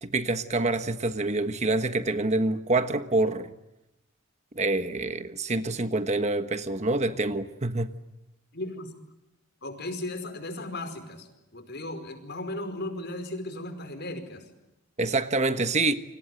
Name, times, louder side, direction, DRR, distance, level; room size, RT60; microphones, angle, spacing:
voice 1, 0.0-3.5 4.5-7.9 15.0-15.9, right 2 dB, 35° right, 1.4 m, -26 dB
voice 2, 8.5-8.9 9.6-14.5, left 1 dB, 55° left, 5.0 m, -36 dB
29.5 x 26.0 x 7.8 m
head